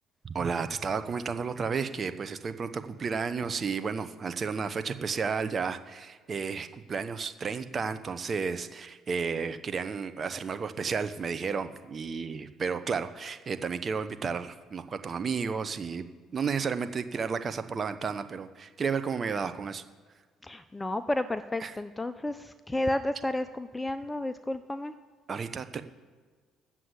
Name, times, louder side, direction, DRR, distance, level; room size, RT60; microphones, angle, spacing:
voice 1, 0.2-16.0 16.3-19.8 21.6-21.7 25.3-25.8, right 5 dB, 40° right, 10 dB, 0.7 m, -32 dB
voice 2, 20.4-24.9, left 1 dB, 15° left, 11 dB, 0.6 m, -32 dB
9.7 x 7.4 x 8.1 m, 1.5 s
supercardioid pair, 65°, 0 cm